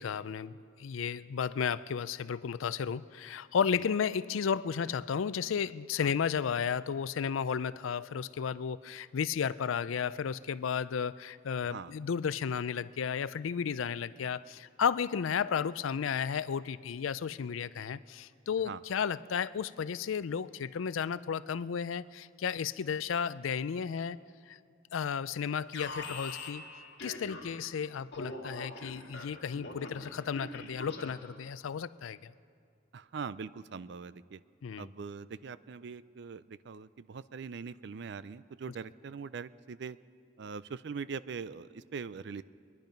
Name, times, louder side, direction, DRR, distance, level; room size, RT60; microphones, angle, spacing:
voice 1, 0.0-24.2 24.5-24.6 24.9-26.6 27.0-32.3 34.6-34.9, left 7 dB, 85° left, 17 dB, 0.4 m, -33 dB
Alarm, 25.7-27.7 28.1-31.4, left 2 dB, 60° left, 1.9 m, -43 dB
voice 2, 32.9-34.4 34.8-40.0 40.4-42.4, right 5 dB, 60° right, 16 dB, 0.4 m, -42 dB
24.0 x 10.5 x 5.2 m, 2.3 s
head